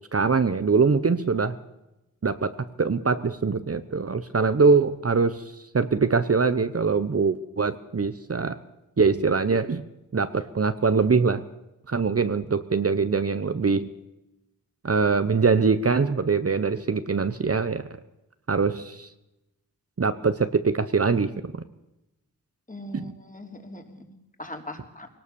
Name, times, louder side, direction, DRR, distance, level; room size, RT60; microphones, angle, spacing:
voice 1, 0.1-1.6 2.2-2.5 2.8-5.4 5.7-8.6 9.0-9.8 10.1-11.4 11.9-13.9 14.8-17.8 18.5-19.1 20.0-21.5 22.9-23.1, right 4 dB, 40° right, 12 dB, 1.0 m, -23 dB
voice 2, 22.7-25.1, left 1 dB, 25° left, 4 dB, 3.3 m, -40 dB
22.0 x 18.5 x 7.1 m, 0.93 s
wide cardioid pair, 80°, 35 cm